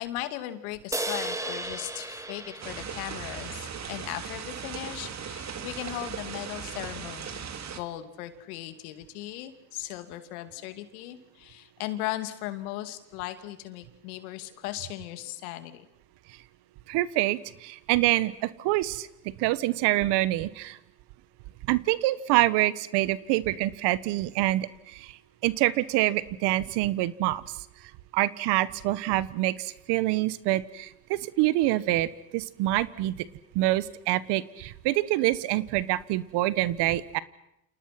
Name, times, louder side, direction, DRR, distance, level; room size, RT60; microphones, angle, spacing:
voice 1, 0.0-7.5 7.8-15.9, left 14 dB, 85° left, 10 dB, 2.7 m, -37 dB
sound 1, 0.9-4.4, right 2 dB, 5° right, 2.2 m, -36 dB
sound 2, 2.6-7.8, right 7 dB, 40° right, 2.8 m, -38 dB
voice 2, 16.9-19.1 19.4-20.8 21.7-25.2 25.4-27.4 28.1-33.3 33.5-37.2, right 16 dB, 70° right, 17 dB, 1.5 m, -26 dB
29.5 x 28.0 x 6.0 m, 0.81 s
supercardioid pair, 85°, 43 cm